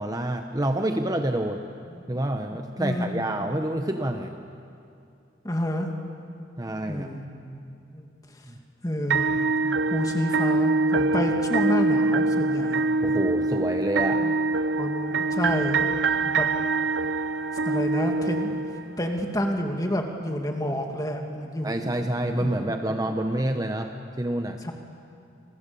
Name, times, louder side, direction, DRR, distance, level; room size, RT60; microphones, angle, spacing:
voice 1, 0.0-1.7 2.1-4.3 6.6-7.1 8.5-8.6 13.0-14.2 21.6-23.9 24.2-24.6, right 1 dB, 20° right, 5 dB, 0.9 m, -27 dB
voice 2, 2.5-3.2 5.4-5.9 6.9-7.3 7.9-8.1 8.8-9.5 9.9-12.8 14.2-14.3 14.8-15.8 16.3-16.5 17.6-18.6 19.0-21.7 22.4-22.6 22.9-23.0 24.6-24.7, equal, 20° left, 3 dB, 2.4 m, -29 dB
sound 1, 9.1-19.1, right 3 dB, 70° right, 0.6 m, -24 dB
29.5 x 24.0 x 7.0 m, 2.6 s
head